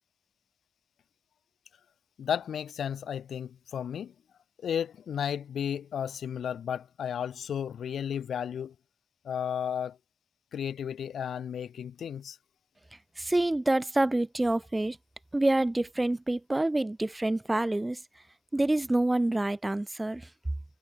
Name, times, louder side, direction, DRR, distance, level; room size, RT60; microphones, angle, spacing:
voice 1, 2.2-4.1 4.6-8.7 9.2-10.0 10.5-12.4, left 8 dB, 85° left, 0.5 m, -33 dB
voice 2, 13.2-15.0 15.3-18.0 18.5-20.3, right 2 dB, 15° right, 1.2 m, -27 dB
cardioid pair, 75°, 0 cm